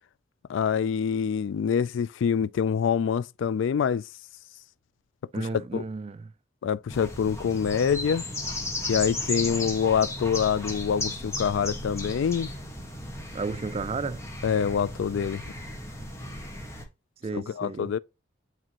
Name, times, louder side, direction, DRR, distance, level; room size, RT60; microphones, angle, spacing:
voice 1, 0.5-4.0 5.3-5.8 6.6-8.2 8.9-12.5 14.4-15.4 17.3-18.0, left 7 dB, 80° left, 0.3 m, -26 dB
voice 2, 5.3-6.3 13.3-14.2 17.2-17.9, right 4 dB, 30° right, 0.4 m, -33 dB
sound 1, 6.9-16.8, left 1 dB, 15° left, 1.4 m, -35 dB
8.8 x 3.7 x 2.9 m
head